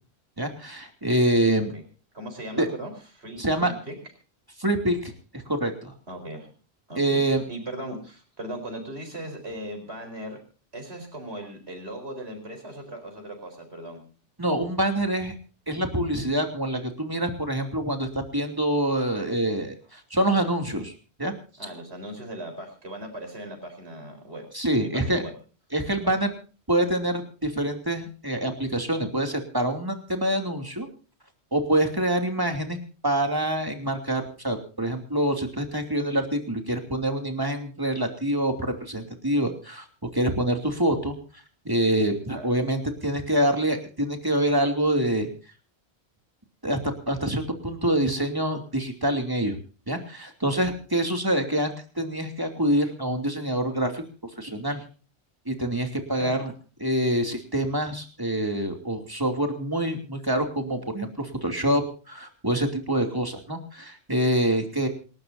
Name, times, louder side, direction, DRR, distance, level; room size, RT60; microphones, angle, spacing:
voice 1, 0.4-1.7 2.6-2.7 3.4-3.7 4.6-5.9 7.0-7.4 14.4-15.3 15.7-20.9 21.2-21.3 21.6-21.7 24.5-25.2 25.7-26.3 26.7-30.9 31.5-32.8 33.0-39.8 40.1-41.1 41.6-45.3 46.6-46.8 47.1-49.6 49.9-54.0 54.4-54.8 55.5-56.5 56.8-64.9, right 1 dB, 20° right, 4 dB, 2.8 m, -26 dB
voice 2, 2.1-3.9 6.1-6.5 6.9-10.4 10.7-14.0 21.6-24.4 24.7-25.3 42.3-42.5 56.2-56.4, right 1 dB, 80° right, 4 dB, 4.8 m, -38 dB
27.5 x 13.0 x 2.7 m, 0.37 s
omnidirectional pair, 1.1 m